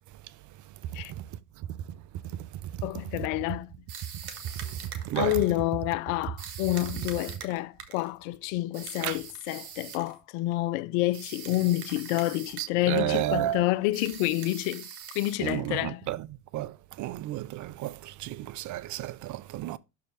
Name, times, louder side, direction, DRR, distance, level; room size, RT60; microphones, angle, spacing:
voice 1, 2.8-3.7 5.1-14.8 15.2-16.1, left 17 dB, 70° left, 0.6 m, -28 dB
sound 1, 3.9-5.6 6.4-8.1 8.7-10.1 11.1-12.7 13.0-13.3 13.9-15.8, right 7 dB, 85° right, 1.6 m, -43 dB
voice 2, 5.1-5.4 9.0-9.2 12.6-13.7 15.4-16.3 16.5-16.7 17.0-19.8, right 14 dB, 45° right, 0.6 m, -31 dB
6.3 x 4.8 x 4.8 m
hypercardioid pair, 85°, 42 cm